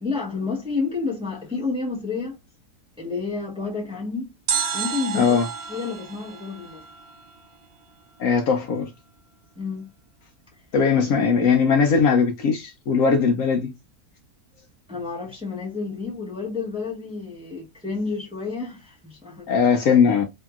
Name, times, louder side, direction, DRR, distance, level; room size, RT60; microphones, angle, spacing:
voice 1, 0.0-2.4 3.0-4.3 4.7-5.4 5.7-6.8 9.6-9.9 14.9-19.5, left 4 dB, 5° right, 0.8 m, -30 dB
sound 1, 4.5-7.6 7.8-7.9, right 7 dB, 75° right, 1.2 m, -30 dB
voice 2, 5.1-5.5 8.2-8.9 10.7-13.7 19.5-20.3, left 5 dB, 70° left, 0.9 m, -19 dB
2.8 x 2.7 x 2.3 m
omnidirectional pair, 1.6 m